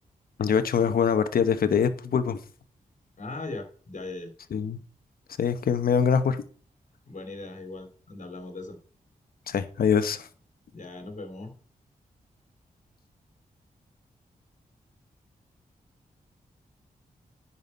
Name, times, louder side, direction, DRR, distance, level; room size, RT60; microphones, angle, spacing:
voice 1, 0.4-2.4 4.5-4.8 5.4-6.4 9.5-10.3, left 7 dB, 75° left, 0.9 m, -24 dB
voice 2, 3.2-4.3 7.1-8.8 10.7-11.5, left 2 dB, 55° left, 2.8 m, -39 dB
9.7 x 5.6 x 5.4 m
cardioid pair, 85°, 15 cm